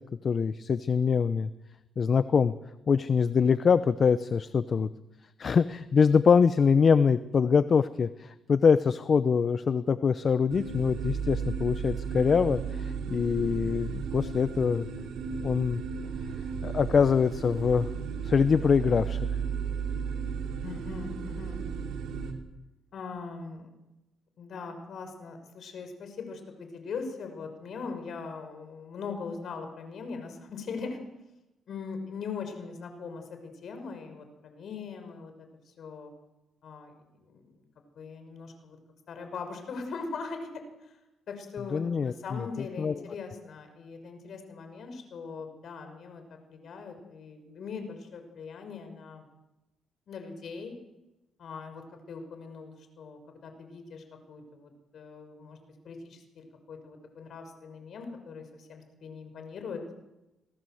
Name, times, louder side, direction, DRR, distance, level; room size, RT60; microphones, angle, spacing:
voice 1, 0.2-1.5 2.0-2.5 2.9-4.9 5.4-14.9 15.4-15.8 16.6-17.9 18.2-19.2 41.7-42.5 42.8-42.9, left 6 dB, 45° left, 13 dB, 0.8 m, -24 dB
sound 1, 10.5-22.3, right 6 dB, 80° right, 4.1 m, -34 dB
voice 2, 20.6-21.7 22.9-23.7 24.4-31.0 31.7-36.1 36.6-36.9 37.2-37.6 38.0-38.8 39.1-40.9 41.3-46.2 46.5-49.2 50.1-50.7 51.4-55.6 55.8-60.0, left 5 dB, 60° left, 6 dB, 6.2 m, -41 dB
27.0 x 18.5 x 8.0 m, 0.99 s
cardioid pair, 90°, 0 cm